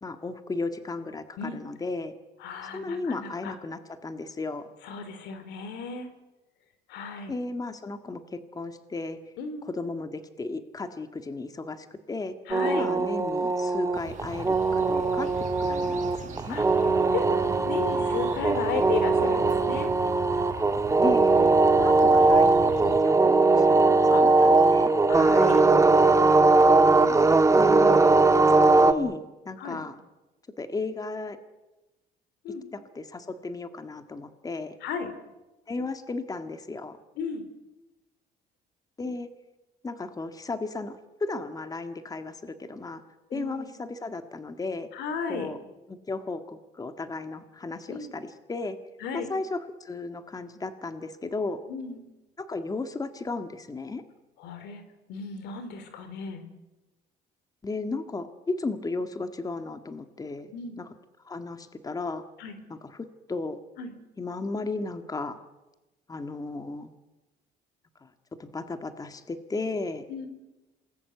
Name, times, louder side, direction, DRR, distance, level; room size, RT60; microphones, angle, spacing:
voice 1, 0.0-2.1 2.7-4.7 7.3-9.2 9.6-12.3 12.6-16.6 21.0-21.4 21.8-24.9 27.6-28.0 28.5-30.0 30.6-31.4 32.7-34.8 35.7-37.0 39.0-39.3 39.8-43.0 43.3-44.9 45.3-45.6 45.9-48.8 49.1-51.6 52.4-54.0 57.6-60.5 60.8-60.9 61.3-62.2 62.7-63.6 64.2-65.4 66.1-66.9 68.0-68.1 68.4-70.0, left 3 dB, 20° left, 8 dB, 1.8 m, -34 dB
voice 2, 2.4-3.5 4.8-6.1 6.9-7.4 9.4-9.7 12.5-12.9 16.5-16.7 17.1-19.9 21.8-21.9 24.1-24.2 25.1-25.6 27.0-27.3 29.6-29.8 32.4-32.6 34.8-35.1 37.2-37.4 43.3-43.7 44.9-45.5 47.9-48.1 49.0-49.3 51.7-52.0 54.4-54.8 55.1-56.4 60.5-60.8 62.4-62.6 63.8-63.9 70.1-70.3, left 6 dB, 90° left, 10 dB, 3.8 m, -34 dB
sound 1, 12.5-28.9, right 3 dB, 20° right, 1.6 m, -20 dB
sound 2, 13.9-23.0, right 7 dB, 50° right, 4.1 m, -39 dB
27.5 x 20.0 x 8.0 m, 1.1 s
cardioid pair, 110°, 17 cm